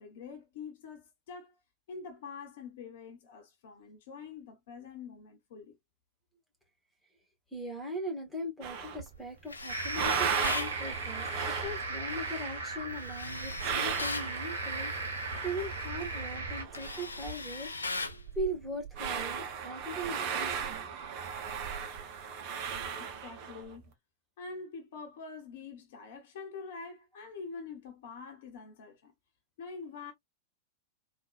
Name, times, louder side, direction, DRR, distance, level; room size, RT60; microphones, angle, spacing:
voice 1, 0.0-1.6 1.9-5.8 23.0-23.9 24.4-29.1 29.6-30.1, left 5 dB, 55° left, 1.0 m, -45 dB
voice 2, 7.5-17.7 18.4-20.9, right 1 dB, ahead, 1.9 m, -39 dB
sound 1, 8.6-9.2 9.6-17.4 17.7-17.8 18.0-23.7, right 6 dB, 45° right, 0.9 m, -37 dB
Tools, 9.5-10.8 12.9-14.3 15.8-16.0 16.4-18.2, left 3 dB, 80° left, 0.5 m, -38 dB
sound 2, 9.7-16.6, right 3 dB, 75° right, 1.0 m, -38 dB
3.8 x 2.5 x 2.4 m
figure-of-eight pair, 90°, 0 cm